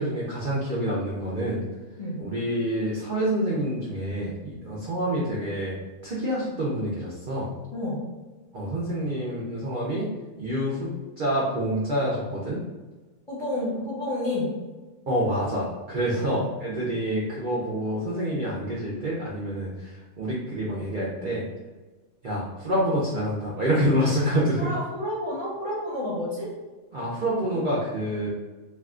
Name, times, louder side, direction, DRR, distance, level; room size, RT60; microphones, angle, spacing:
voice 1, 0.0-1.6 2.2-5.7 6.0-7.5 8.5-10.1 10.4-10.9 11.2-12.6 15.1-21.4 22.2-24.7 26.9-28.3, equal, 65° right, -6 dB, 0.5 m, -27 dB
voice 2, 7.7-8.0 13.3-14.5 16.1-16.2 24.6-26.5, left 1 dB, 30° left, -8 dB, 0.7 m, -30 dB
2.7 x 2.2 x 3.6 m, 1.2 s
omnidirectional pair, 1.6 m